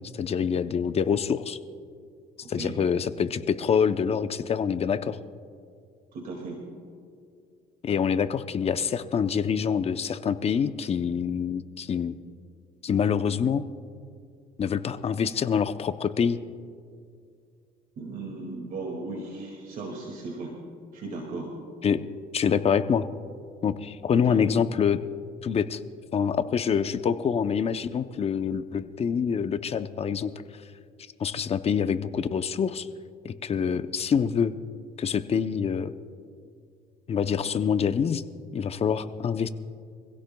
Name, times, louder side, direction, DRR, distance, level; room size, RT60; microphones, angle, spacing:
voice 1, 0.1-1.6 2.5-5.2 7.8-12.1 12.8-13.6 14.6-16.4 21.8-22.0 22.3-23.1 23.6-25.0 25.4-25.8 26.1-30.3 31.2-32.9 33.2-34.5 35.0-35.9 37.1-38.2 38.5-39.5, left 7 dB, 35° left, 11 dB, 0.7 m, -26 dB
voice 2, 6.1-6.6 18.0-20.5 20.9-21.5 24.1-24.4, right 3 dB, 60° right, 0 dB, 2.2 m, -36 dB
25.5 x 16.5 x 2.3 m, 2.3 s
cardioid pair, 110°, 17 cm